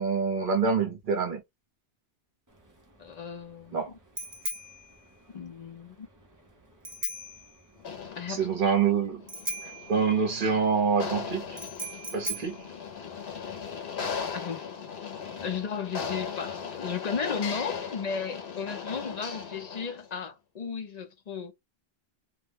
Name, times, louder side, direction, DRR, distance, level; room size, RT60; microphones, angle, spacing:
voice 1, 0.0-1.4 3.7-3.9 8.3-9.2 9.9-11.6 12.1-12.6, right 5 dB, 55° right, 0.9 m, -26 dB
Bicycle bell, 2.5-13.6, right 1 dB, 25° right, 0.5 m, -40 dB
voice 2, 3.0-4.0 5.3-6.1 8.2-8.5 14.3-14.7 15.4-21.5, left 6 dB, 50° left, 0.6 m, -35 dB
sound 1, 7.8-20.1, left 6 dB, 80° left, 1.0 m, -38 dB
2.3 x 2.1 x 3.2 m
omnidirectional pair, 1.0 m